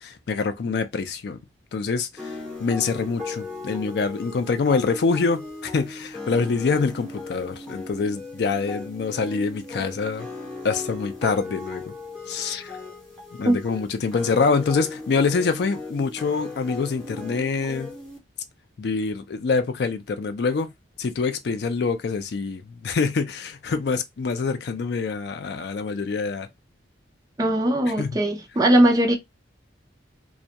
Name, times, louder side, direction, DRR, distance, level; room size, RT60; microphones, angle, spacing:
voice 1, 0.0-1.4 1.7-10.3 10.6-11.8 12.3-12.7 13.3-17.9 18.8-20.7 21.0-26.5 27.9-28.2, left 4 dB, 55° left, 0.4 m, -25 dB
sound 1, 2.2-18.2, left 3 dB, 5° left, 0.8 m, -37 dB
voice 2, 27.4-29.2, right 1 dB, 20° right, 0.4 m, -19 dB
2.2 x 2.1 x 2.7 m
head